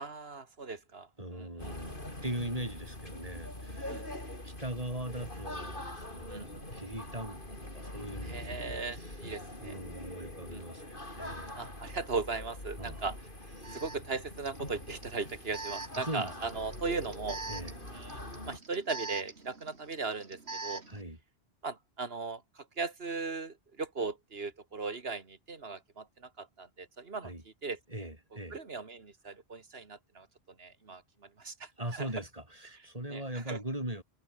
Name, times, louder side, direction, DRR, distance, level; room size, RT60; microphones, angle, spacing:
voice 1, 0.0-1.7 3.9-4.0 6.3-6.5 8.2-9.8 10.5-10.6 11.5-13.2 13.7-17.4 17.9-20.8 21.6-27.3 27.6-27.8 28.3-30.3 30.6-31.0 31.4-32.1 33.1-33.6, right 4 dB, 70° right, 2.5 m, -38 dB
voice 2, 1.2-2.0 2.2-4.0 4.4-8.5 8.9-9.2 9.6-11.6 12.8-13.1 13.6-13.8 16.0-16.3 17.5-17.7 20.9-21.2 27.2-27.4 27.9-28.6 31.8-34.0, right 1 dB, 35° right, 5.7 m, -40 dB
sound 1, 1.6-18.6, left 1 dB, 55° left, 6.6 m, -43 dB
Alarm, 12.8-12.9 13.6-21.0, right 3 dB, 85° right, 3.2 m, -44 dB
omnidirectional pair, 1.1 m